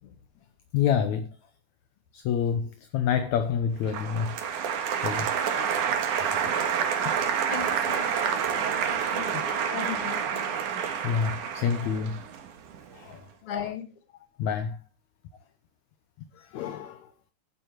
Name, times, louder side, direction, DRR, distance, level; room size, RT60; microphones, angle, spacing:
voice 1, 0.7-1.3 2.1-4.3 5.0-5.9 6.2-6.6 9.3-9.4 10.4-10.6 11.0-12.2 12.9-13.7 14.4-14.8 16.4-17.3, left 7 dB, 70° left, 2.1 m, -29 dB
Applause, 3.9-13.0, right 7 dB, 70° right, 2.9 m, -28 dB
voice 2, 7.5-10.5 11.7-11.9 13.4-13.8, left 8 dB, 45° left, 2.5 m, -38 dB
12.0 x 10.5 x 4.6 m
omnidirectional pair, 3.7 m